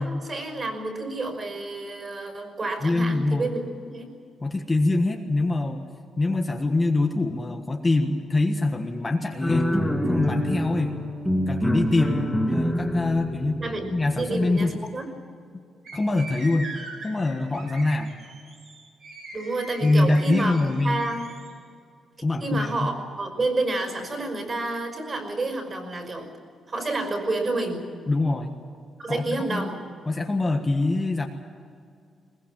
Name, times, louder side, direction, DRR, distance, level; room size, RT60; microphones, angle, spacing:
voice 1, 0.0-3.6 3.9-4.1 12.2-12.3 13.6-13.9 14.1-15.1 19.3-20.6 20.8-21.2 22.4-26.3 26.7-27.9 29.0-29.8, right 2 dB, 30° right, 5 dB, 5.5 m, -29 dB
voice 2, 2.8-3.6 4.4-5.8 6.2-9.7 10.1-10.9 11.5-13.6 13.9-14.9 15.5-15.6 15.9-16.7 17.0-18.2 19.8-21.0 22.2-22.9 28.1-28.5 29.1-29.7 30.1-31.3, left 2 dB, 20° left, 3 dB, 1.5 m, -24 dB
sound 1, 9.4-14.7, equal, ahead, 2.8 m, -27 dB
sound 2, 15.8-21.5, right 2 dB, 65° right, 7.8 m, -41 dB
21.5 x 20.5 x 7.5 m, 2.3 s
cardioid pair, 130°, 0 cm